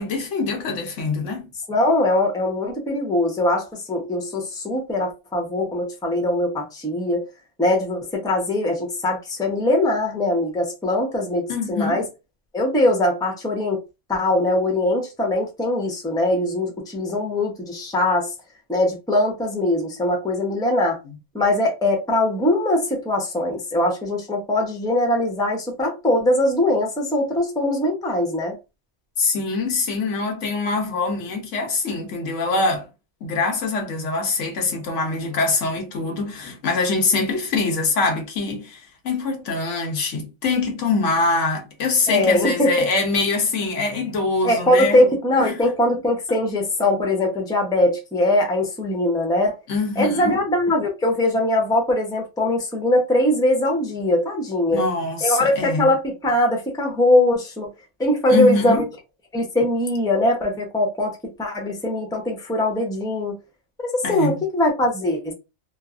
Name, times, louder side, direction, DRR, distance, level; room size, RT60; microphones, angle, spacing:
voice 1, 0.0-1.5 11.5-12.0 29.2-32.9 33.2-45.0 45.4-45.6 49.7-50.4 54.7-55.9 58.3-58.9 64.0-64.4, left 3 dB, 80° left, 1.1 m, -24 dB
voice 2, 1.7-7.2 7.6-12.1 12.5-13.8 14.1-18.3 18.7-21.0 21.3-28.6 42.1-42.9 44.4-49.6 50.0-54.9 55.2-57.7 58.0-58.8 59.3-63.3 63.8-65.3, left 1 dB, 5° left, 0.6 m, -21 dB
3.0 x 2.0 x 2.4 m
omnidirectional pair, 1.2 m